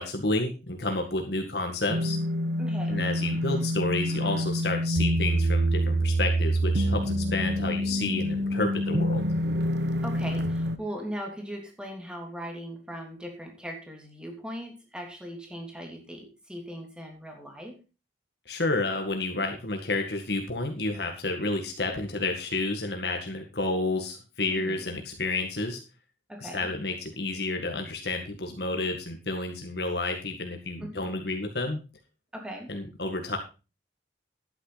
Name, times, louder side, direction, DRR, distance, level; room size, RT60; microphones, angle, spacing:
voice 1, 0.0-2.2 2.9-9.3 18.5-25.8 26.4-31.8 32.7-33.4, left 2 dB, 65° left, 3 dB, 1.9 m, -30 dB
sound 1, 1.9-10.8, equal, 70° right, 1.1 m, -26 dB
voice 2, 2.6-3.0 10.0-17.8 24.5-24.8 26.3-26.7 30.8-31.1 32.3-32.7, equal, 5° right, 1 dB, 3.0 m, -39 dB
11.5 x 9.6 x 4.1 m, 0.32 s
head